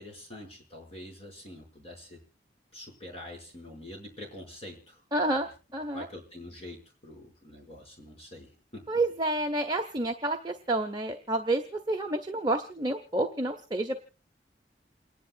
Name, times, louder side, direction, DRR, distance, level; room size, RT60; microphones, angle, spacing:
voice 1, 0.0-2.2 2.7-5.0 5.9-9.0, left 1 dB, 35° left, -1 dB, 5.4 m, -45 dB
voice 2, 5.1-6.1 8.9-14.0, right 2 dB, 25° right, 4 dB, 0.8 m, -29 dB
28.5 x 11.0 x 2.3 m, 0.35 s
head